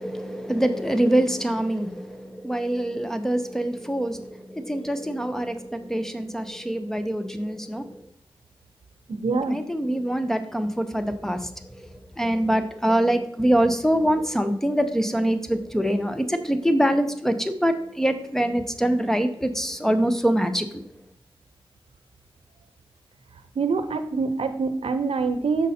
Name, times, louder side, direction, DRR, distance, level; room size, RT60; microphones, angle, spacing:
voice 1, 0.0-8.1 9.5-20.8, right 1 dB, 5° left, 0.7 m, -24 dB
voice 2, 9.1-9.6 23.6-25.7, right 4 dB, 80° right, 0.6 m, -25 dB
6.3 x 5.4 x 4.2 m
wide cardioid pair, 75°, 10 cm